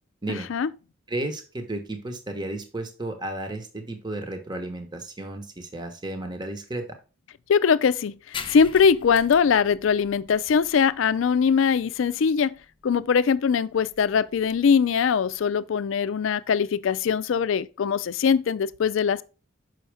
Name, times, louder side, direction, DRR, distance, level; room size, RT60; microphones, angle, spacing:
voice 1, 1.1-6.9, right 1 dB, 20° right, 1.0 m, -33 dB
voice 2, 7.5-12.6 12.8-19.2, left 6 dB, 70° left, 0.4 m, -22 dB
sound 1, 8.3-15.5, left 6 dB, 25° left, 0.6 m, -43 dB
6.3 x 5.6 x 3.3 m
head